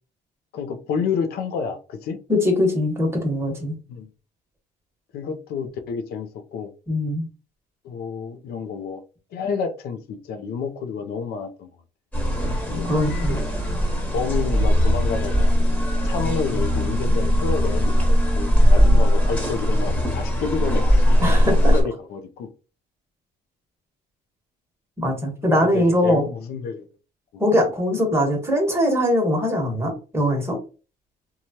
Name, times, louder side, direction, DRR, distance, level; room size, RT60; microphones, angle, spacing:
voice 1, 0.5-2.2 3.9-4.1 5.1-6.7 7.8-9.0 9.3-11.7 12.7-12.9 13.3-13.4 14.1-15.5 16.0-22.5 25.4-26.8, left 6 dB, 70° left, 0.5 m, -29 dB
voice 2, 2.3-3.8 6.9-7.3 12.9-13.4 21.2-21.8 25.0-26.3 27.4-30.6, left 1 dB, 15° right, 1.1 m, -21 dB
sound 1, 12.1-21.8, equal, 10° left, 1.2 m, -19 dB
3.0 x 2.3 x 2.7 m
cardioid pair, 110°, 17 cm